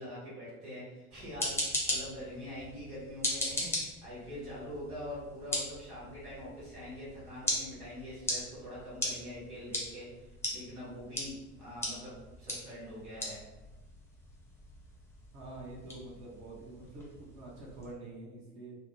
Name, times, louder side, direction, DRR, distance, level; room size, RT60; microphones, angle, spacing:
voice 1, 0.0-13.4, left 1 dB, 80° right, -8 dB, 1.4 m, -44 dB
sound 1, 1.1-17.9, left 1 dB, 5° left, 0.8 m, -39 dB
voice 2, 15.3-18.8, right 2 dB, 40° right, -4 dB, 0.9 m, -47 dB
3.1 x 2.0 x 3.1 m, 1.1 s
figure-of-eight pair, 65°, 45 cm